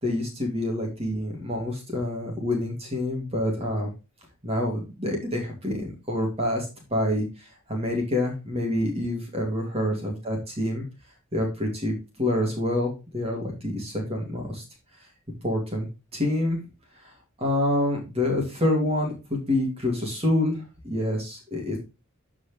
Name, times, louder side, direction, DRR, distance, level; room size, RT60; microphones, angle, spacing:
voice 1, 0.0-3.9 4.4-10.8 11.3-14.6 15.4-15.9 16.1-16.6 17.0-17.1 17.4-21.8, left 1 dB, 30° right, 0 dB, 2.6 m, -27 dB
13.0 x 5.0 x 3.3 m, 0.29 s
head